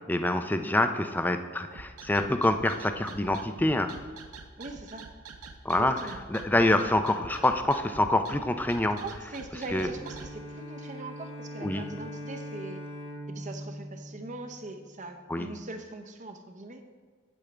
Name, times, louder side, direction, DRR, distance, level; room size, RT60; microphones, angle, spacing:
voice 1, 0.1-3.9 5.6-6.0 6.3-9.0 9.7-9.9 11.6-11.9 15.3-15.5, left 1 dB, 10° left, 8 dB, 0.4 m, -26 dB
sound 1, 1.7-10.3, right 4 dB, 90° right, 0.7 m, -45 dB
voice 2, 4.6-5.1 5.7-6.2 9.0-12.8 13.3-16.8, right 2 dB, 35° right, 5 dB, 0.7 m, -41 dB
Bowed string instrument, 9.6-14.9, equal, 75° left, 1.3 m, -41 dB
8.5 x 8.1 x 3.3 m, 1.5 s
head